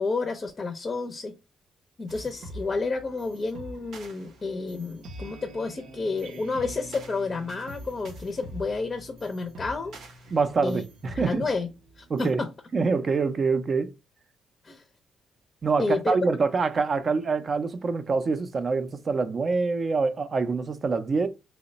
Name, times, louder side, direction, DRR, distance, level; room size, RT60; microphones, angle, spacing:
voice 1, 0.0-1.4 2.0-10.0 10.6-10.8 11.1-11.7 12.0-12.5 14.6-14.8 15.8-16.2, left 3 dB, 30° left, 0.5 m, -30 dB
sound 1, 2.1-12.3, right 1 dB, 80° right, 0.7 m, -44 dB
voice 2, 10.3-11.4 12.1-12.4 12.7-13.9 15.6-21.3, right 4 dB, 40° right, 0.5 m, -25 dB
3.0 x 2.1 x 3.9 m
cardioid pair, 90°, 0 cm